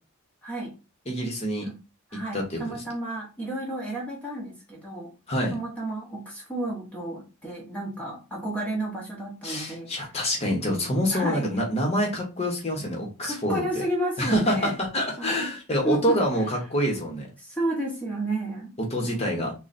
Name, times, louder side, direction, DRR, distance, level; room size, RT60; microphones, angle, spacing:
voice 1, 0.4-0.8 1.6-1.8 2.1-5.1 5.5-9.9 11.1-11.6 13.2-14.8 15.2-15.5 15.8-16.2 17.4-18.7, right 1 dB, 5° left, -3 dB, 1.3 m, -31 dB
voice 2, 1.1-1.7 2.1-2.7 5.3-5.5 9.4-13.6 14.2-17.3 18.8-19.5, equal, 30° left, 0 dB, 1.2 m, -26 dB
3.9 x 2.4 x 4.1 m, 0.31 s
head